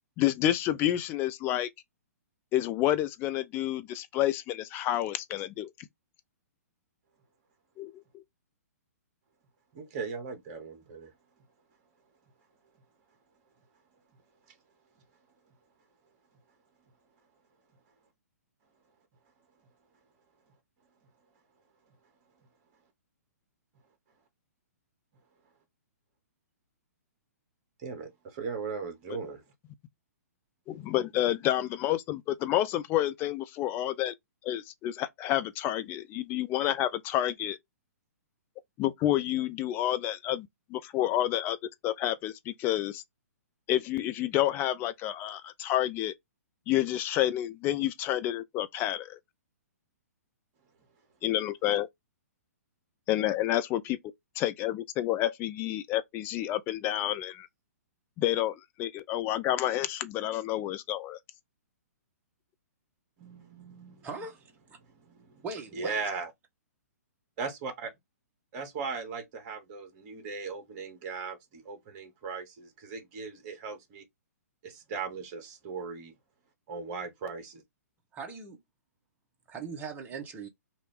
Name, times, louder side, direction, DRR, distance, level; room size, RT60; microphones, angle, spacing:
voice 1, 0.2-1.7 2.5-5.7 7.8-8.2 30.7-34.1 34.4-37.6 38.8-41.6 41.8-43.0 43.7-46.1 46.7-49.2 51.2-51.9 53.1-54.0 54.4-57.5 58.2-61.2, left 13 dB, 25° left, 0.4 m, -29 dB
voice 2, 9.7-11.1 27.8-29.4 63.2-64.1 64.9-65.4 65.7-66.3 67.4-67.9 68.5-74.0 74.6-76.1 76.7-77.5, right 5 dB, 35° right, 1.2 m, -38 dB
voice 3, 64.0-64.5 65.4-66.0 78.1-78.6 79.5-80.5, right 4 dB, 20° right, 1.0 m, -39 dB
2.8 x 2.5 x 3.5 m
figure-of-eight pair, 120°, 9 cm